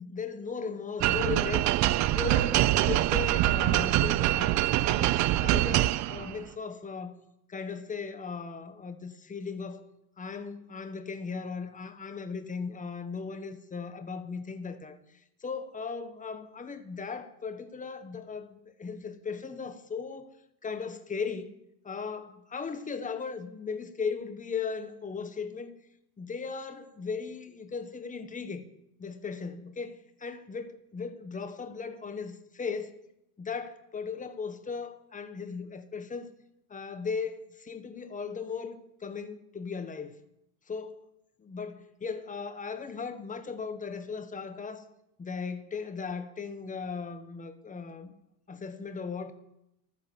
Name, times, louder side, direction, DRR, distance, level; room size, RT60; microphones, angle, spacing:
voice 1, 0.0-1.7 2.1-7.2 7.5-9.9 10.2-15.0 15.4-20.3 20.6-21.5 21.8-25.7 26.2-28.6 29.0-33.0 33.4-36.3 36.7-40.2 40.7-41.0 41.4-44.8 45.2-48.1 48.5-49.3, left 5 dB, 15° left, 1.4 m, -37 dB
sound 1, 1.0-6.4, right 15 dB, 40° right, 0.5 m, -25 dB
13.0 x 9.8 x 7.1 m
supercardioid pair, 120°, 46 cm